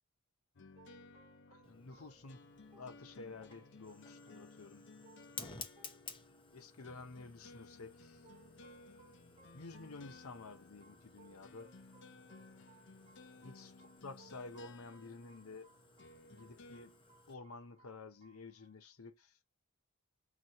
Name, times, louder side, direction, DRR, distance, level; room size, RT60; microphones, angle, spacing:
sound 1, 0.6-16.9, left 3 dB, 55° left, 0.6 m, -59 dB
sound 2, 0.7-7.3 8.2-19.1, right 3 dB, 30° right, 1.1 m, -67 dB
voice 1, 1.5-2.4 2.7-4.9 6.5-8.2 9.5-11.7 13.3-13.7 14.0-15.7 16.3-17.0 17.3-19.4, left 3 dB, 85° left, 0.9 m, -51 dB
Fire, 1.6-17.3, left 4 dB, 25° left, 0.9 m, -56 dB
6.1 x 2.7 x 2.9 m
head